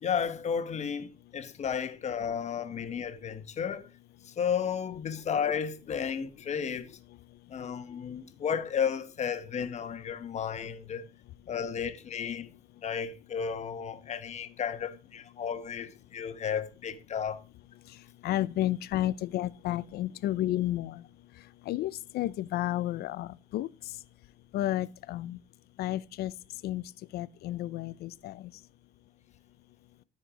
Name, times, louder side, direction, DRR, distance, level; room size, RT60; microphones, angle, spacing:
voice 1, 0.0-3.9 4.2-6.9 7.5-11.1 11.5-12.5 12.8-17.4, left 7 dB, 40° left, 1.1 m, -33 dB
voice 2, 18.2-21.0 21.7-23.7 24.5-25.4 25.8-26.3 26.6-26.8 27.1-28.5, left 14 dB, 70° left, 0.5 m, -31 dB
13.0 x 4.5 x 4.9 m
cardioid pair, 110°, 17 cm